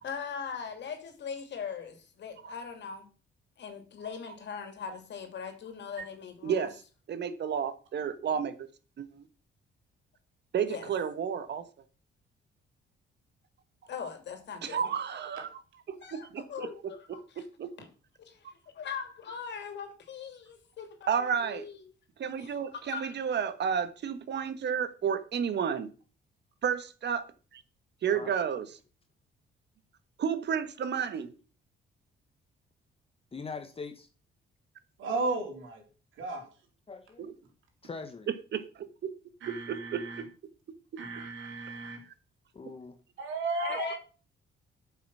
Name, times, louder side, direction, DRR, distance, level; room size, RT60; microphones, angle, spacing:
voice 1, 0.0-3.1 3.6-6.7 10.6-10.9 13.9-14.9 16.0-17.5 17.8-17.9 18.2-21.9 22.4-23.1 43.6-44.0, left 6 dB, 60° left, 2.8 m, -40 dB
voice 2, 7.1-8.5 9.0-9.2 10.5-11.6 14.6-15.5 15.9-16.7 17.6-17.7 21.1-21.6 22.2-25.9 26.6-27.2 27.5-27.6 28.0-28.7 30.2-31.3 38.3-38.6 39.7-40.0 43.7-43.8, right 7 dB, 60° right, 1.4 m, -31 dB
voice 3, 33.3-34.1 36.9-37.3 37.8-38.3 42.5-43.0, left 4 dB, 30° left, 1.2 m, -42 dB
voice 4, 35.0-35.7 36.2-36.5 39.4-40.2 41.0-42.0 43.2-44.0, right 3 dB, 80° right, 3.7 m, -34 dB
8.7 x 7.2 x 6.2 m
cardioid pair, 90°, 20 cm